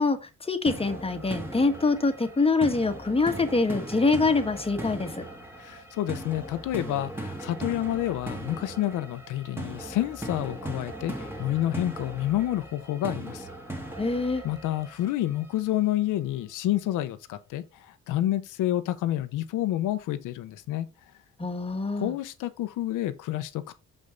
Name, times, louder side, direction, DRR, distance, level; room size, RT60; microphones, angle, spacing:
voice 1, 0.0-5.2 14.0-14.4 21.4-22.1, left 3 dB, 20° left, 1.4 m, -25 dB
sound 1, 0.7-15.6, right 1 dB, 10° right, 2.1 m, -39 dB
voice 2, 5.6-13.5 14.4-17.6 18.1-20.9 22.0-23.7, left 13 dB, 85° left, 0.9 m, -29 dB
6.4 x 5.5 x 3.8 m
cardioid pair, 90°, 30 cm